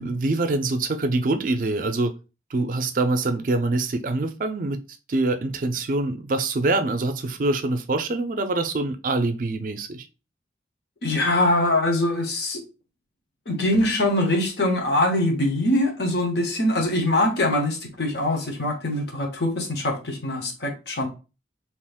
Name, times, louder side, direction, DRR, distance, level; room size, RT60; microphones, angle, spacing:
voice 1, 0.0-2.1 2.5-4.8 5.1-10.1, right 2 dB, 50° right, 0.4 m, -25 dB
voice 2, 11.0-12.6 13.5-21.1, left 1 dB, 65° left, 0.9 m, -23 dB
2.9 x 2.4 x 3.5 m
head